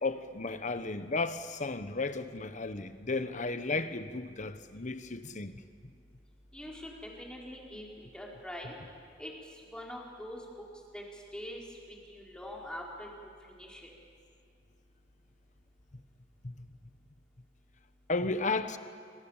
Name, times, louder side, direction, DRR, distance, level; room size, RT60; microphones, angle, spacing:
voice 1, 0.0-5.6 16.4-16.5 18.1-18.8, left 3 dB, 45° left, 1.2 m, -34 dB
voice 2, 6.5-8.7 9.2-9.3 9.7-10.4 10.9-11.0 11.3-11.6 11.9-13.1 13.5-13.9, left 1 dB, 5° left, 4.6 m, -43 dB
28.5 x 25.5 x 7.4 m
head